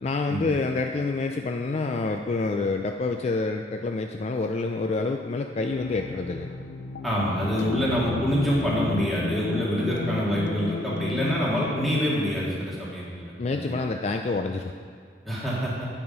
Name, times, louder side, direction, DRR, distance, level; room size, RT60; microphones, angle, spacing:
voice 1, 0.0-6.5 13.4-14.7, left 3 dB, 40° left, 4 dB, 0.3 m, -27 dB
sound 1, 5.7-12.0, left 3 dB, 80° left, 0.6 m, -33 dB
voice 2, 7.0-13.8 15.3-15.9, equal, ahead, -7 dB, 2.0 m, -26 dB
9.6 x 5.6 x 5.2 m, 2.1 s
head